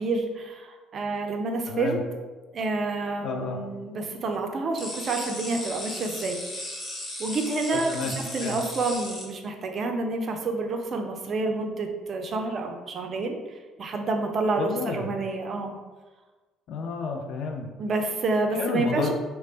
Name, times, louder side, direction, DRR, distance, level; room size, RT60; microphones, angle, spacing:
voice 1, 0.0-2.0 2.5-6.4 7.2-13.4 13.8-15.8 17.8-19.1, right 3 dB, 45° right, 4 dB, 0.5 m, -28 dB
voice 2, 1.7-2.0 3.2-3.6 7.9-8.1 8.4-8.6 14.6-15.1 16.7-17.7 18.6-19.1, left 4 dB, 60° left, 3 dB, 0.5 m, -30 dB
sound 1, 4.8-9.2, left 1 dB, 40° left, 1.4 m, -36 dB
3.2 x 2.2 x 3.8 m, 1.2 s
figure-of-eight pair, 50°, 0 cm